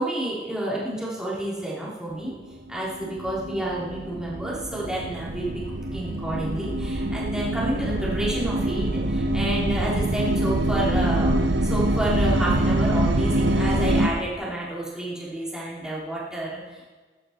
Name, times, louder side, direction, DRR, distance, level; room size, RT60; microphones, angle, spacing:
voice 1, 0.0-2.3 2.7-5.6 5.9-11.3 11.6-16.9, right 1 dB, 5° right, -7 dB, 3.3 m, -30 dB
sound 1, 2.5-14.1, right 1 dB, 75° right, 1.1 m, -25 dB
15.0 x 11.5 x 4.4 m, 1.4 s
head